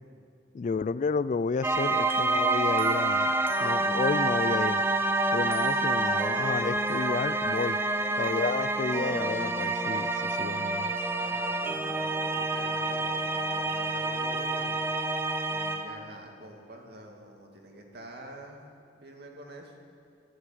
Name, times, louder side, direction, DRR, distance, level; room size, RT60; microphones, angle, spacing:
voice 1, 0.5-3.3 3.6-4.8 5.3-7.8 8.2-10.9, left 4 dB, 40° left, 16 dB, 0.3 m, -31 dB
sound 1, 1.6-16.1, right 2 dB, 15° right, 0.6 m, -28 dB
voice 2, 11.2-14.8 15.5-18.6 19.0-19.8, right 1 dB, 60° right, 1 dB, 2.3 m, -47 dB
13.0 x 11.5 x 9.2 m, 2.5 s
head